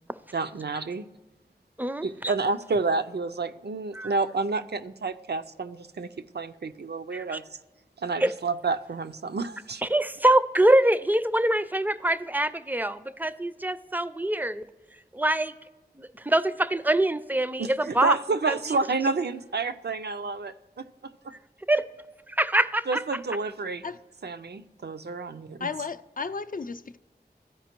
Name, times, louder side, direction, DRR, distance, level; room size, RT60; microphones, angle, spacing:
voice 1, 0.3-1.0 2.0-6.1 6.3-7.4 8.0-9.8 17.6-21.3 22.9-23.8 24.2-25.7, right 4 dB, 75° right, 0.4 m, -29 dB
voice 2, 1.8-2.3 3.9-4.1 7.1-7.4 8.2-8.3 9.8-14.7 15.1-15.5 16.0-18.2 18.5-18.8 21.7-21.8 22.3-23.0, right 1 dB, 10° right, 0.4 m, -24 dB
voice 3, 25.6-27.0, left 4 dB, 55° left, 0.4 m, -34 dB
13.5 x 5.0 x 3.0 m
wide cardioid pair, 50°, 17 cm